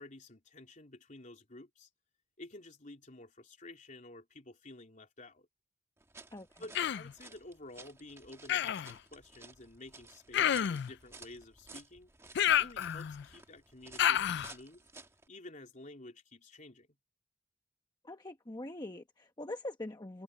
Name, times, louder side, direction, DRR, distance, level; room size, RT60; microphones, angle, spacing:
voice 1, 0.0-1.9 2.4-5.5 6.6-12.1 12.6-14.8 15.3-16.9, left 2 dB, 45° left, 3.5 m, -51 dB
sound 1, 6.0-15.3, right 3 dB, 15° right, 1.4 m, -55 dB
voice 2, 6.3-6.6 18.0-20.2, left 1 dB, 20° left, 1.0 m, -43 dB
Human voice, 6.7-7.1 8.5-8.9 10.3-10.9 12.3-13.2 14.0-14.5, left 10 dB, 65° left, 0.4 m, -29 dB
head